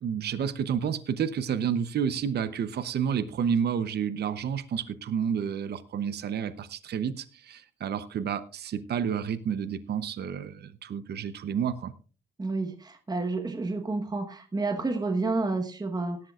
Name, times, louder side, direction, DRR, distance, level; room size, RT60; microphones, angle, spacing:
voice 1, 0.0-11.9, right 7 dB, 55° right, 13 dB, 0.8 m, -30 dB
voice 2, 12.4-16.2, right 3 dB, 20° right, 6 dB, 1.2 m, -30 dB
17.0 x 12.0 x 2.4 m, 0.37 s
cardioid pair, 90°, 20 cm